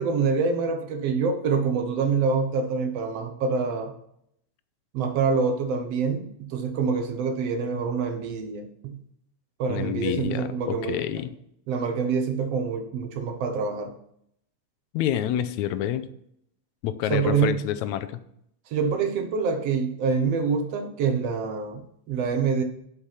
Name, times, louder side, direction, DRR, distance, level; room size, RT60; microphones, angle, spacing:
voice 1, 0.0-3.9 4.9-9.0 9.6-11.2 11.7-13.9 17.1-17.6 18.7-22.6, right 5 dB, 65° right, 7 dB, 1.9 m, -26 dB
voice 2, 9.7-11.3 14.9-16.1 16.8-18.2, left 11 dB, 85° left, 12 dB, 2.0 m, -28 dB
8.1 x 7.4 x 5.7 m, 0.72 s
omnidirectional pair, 3.3 m